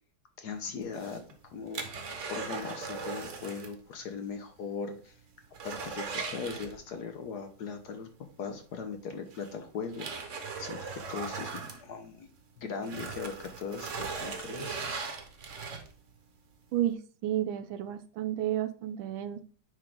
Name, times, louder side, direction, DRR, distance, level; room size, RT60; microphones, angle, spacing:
voice 1, 0.4-1.2 1.5-1.9 2.3-5.2 5.6-8.1 8.4-10.1 10.6-12.3 12.6-14.8, left 5 dB, 60° left, 6 dB, 1.2 m, -39 dB
sound 1, 0.8-3.8 4.1-4.2 4.7-4.8 5.1-7.1 8.6-8.7 9.3-12.4 12.8-16.1 16.6-16.7, right 5 dB, 45° right, 1.1 m, -39 dB
voice 2, 16.7-19.4, right 12 dB, 80° right, 10 dB, 1.4 m, -31 dB
9.6 x 3.8 x 3.5 m, 0.39 s
omnidirectional pair, 2.3 m